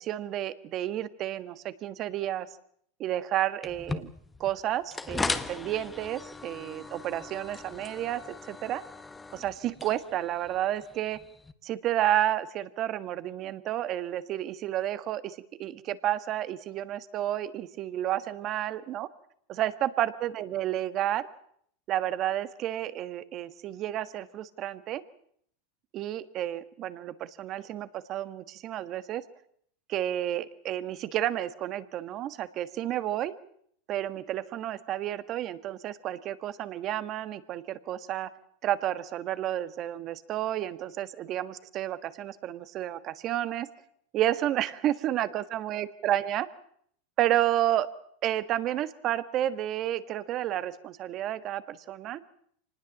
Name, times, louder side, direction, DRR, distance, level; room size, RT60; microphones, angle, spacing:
voice 1, 0.0-2.5 3.0-4.1 4.4-8.2 8.5-8.8 9.3-11.2 11.6-19.1 19.5-21.3 21.9-25.0 25.9-29.2 29.9-33.3 33.9-38.3 38.6-43.7 44.1-46.5 47.2-47.9 48.2-52.2, right 12 dB, 40° right, 13 dB, 1.5 m, -31 dB
sound 1, 3.6-11.5, left 3 dB, 15° left, 1.3 m, -38 dB
25.5 x 19.5 x 7.4 m, 0.66 s
supercardioid pair, 120°, 0 cm